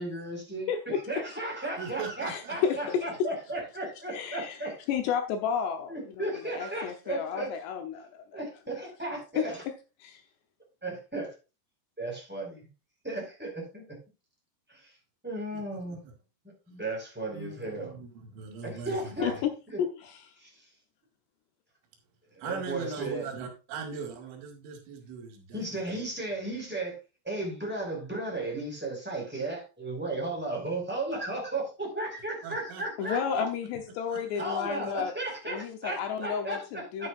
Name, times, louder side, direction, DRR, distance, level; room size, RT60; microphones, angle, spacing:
voice 1, 0.0-0.7 1.1-4.7 5.9-7.5 8.3-9.6 10.8-11.3 12.0-12.6 13.0-13.8 14.7-14.9 15.2-16.0 16.7-17.9 18.6-19.3 19.7-19.8 20.4-20.7 22.3-23.3 25.5-26.9 27.2-33.4 34.4-36.6 37.0-37.1, right 2 dB, ahead, -2 dB, 4.7 m, -35 dB
voice 2, 0.7-1.0 2.2-3.3 4.1-4.6 4.9-8.3 9.3-9.5 10.0-10.2 19.2-19.5 19.8-20.3 33.0-35.1 35.5-37.1, left 8 dB, 75° left, 6 dB, 2.8 m, -32 dB
voice 3, 1.8-2.8 15.5-16.1 17.3-19.4 22.4-26.0 32.4-33.7 34.0-34.5, right 5 dB, 85° right, 3 dB, 4.6 m, -41 dB
11.0 x 9.8 x 2.5 m, 0.30 s
omnidirectional pair, 5.4 m